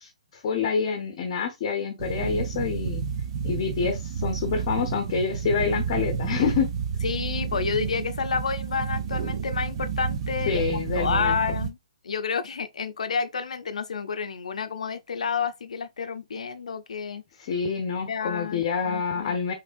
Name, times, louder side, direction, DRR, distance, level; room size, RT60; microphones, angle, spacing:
voice 1, 0.0-3.0 3.4-6.7 10.5-11.4 17.4-19.5, left 6 dB, 40° left, 0.7 m, -27 dB
sound 1, 2.0-11.7, right 6 dB, 45° right, 0.9 m, -30 dB
voice 2, 7.0-11.8 12.0-17.2 18.1-19.3, left 6 dB, 75° left, 0.5 m, -30 dB
3.4 x 3.2 x 2.5 m
hypercardioid pair, 145°, 4 cm